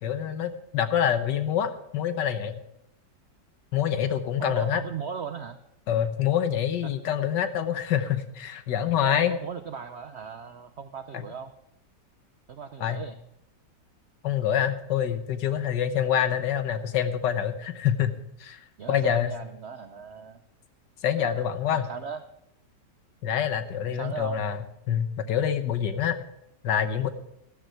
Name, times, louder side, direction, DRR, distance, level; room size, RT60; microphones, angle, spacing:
voice 1, 0.0-2.5 3.7-4.8 5.9-9.4 12.8-13.0 14.2-18.1 18.4-19.3 21.0-21.8 23.2-26.2 26.6-27.1, left 9 dB, 75° left, 10 dB, 1.6 m, -26 dB
voice 2, 4.4-5.6 6.8-7.0 9.0-11.5 12.5-13.2 18.8-20.4 21.2-21.4 21.7-22.2 23.9-24.4, right 6 dB, 70° right, 9 dB, 0.6 m, -37 dB
13.0 x 12.0 x 4.6 m, 0.76 s
omnidirectional pair, 1.9 m